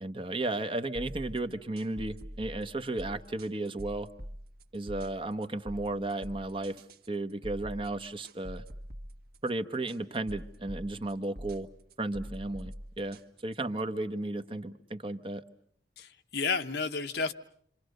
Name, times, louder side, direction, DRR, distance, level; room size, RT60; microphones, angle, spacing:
voice 1, 0.0-4.1 4.7-6.8 7.1-8.6 9.4-11.7 12.0-15.4, right 2 dB, 30° right, 1.0 m, -34 dB
sound 1, 0.9-13.8, equal, 55° right, 1.5 m, -45 dB
voice 2, 16.0-17.3, left 4 dB, 65° left, 1.1 m, -31 dB
27.5 x 25.5 x 6.6 m
head